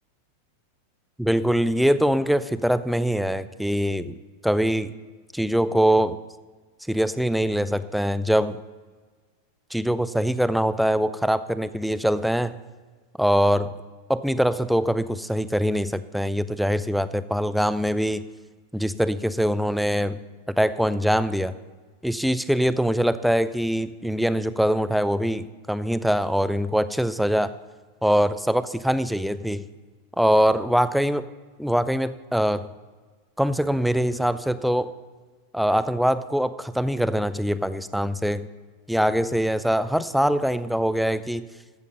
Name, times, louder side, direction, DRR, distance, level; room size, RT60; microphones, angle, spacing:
voice 1, 1.2-4.2 4.4-4.9 5.3-6.2 6.9-8.6 9.7-12.6 13.2-13.7 14.1-18.2 18.7-20.2 20.5-21.5 22.0-27.5 28.0-29.7 30.2-31.3 31.6-32.7 33.4-34.9 35.5-38.5 38.9-41.4, equal, ahead, 14 dB, 0.5 m, -23 dB
13.0 x 8.2 x 5.5 m, 1.4 s
figure-of-eight pair, 90°, 0 cm